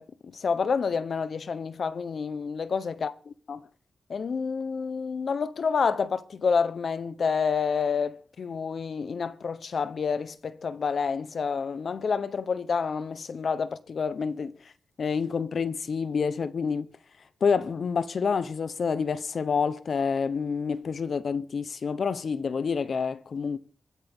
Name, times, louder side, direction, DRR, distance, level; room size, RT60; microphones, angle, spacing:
voice 1, 0.0-3.6 4.1-14.6 15.0-16.9 17.4-23.6, left 5 dB, 50° left, 0.9 m, -28 dB
24.5 x 8.8 x 3.7 m
wide cardioid pair, 145°, 0 cm